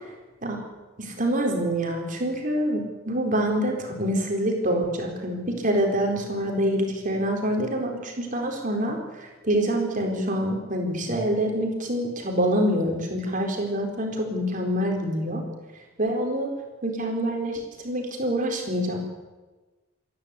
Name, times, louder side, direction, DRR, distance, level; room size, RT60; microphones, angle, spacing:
voice 1, 1.0-15.4 16.0-16.5 16.8-19.0, equal, 40° right, 2 dB, 4.3 m, -26 dB
27.5 x 11.5 x 8.5 m, 1.2 s
head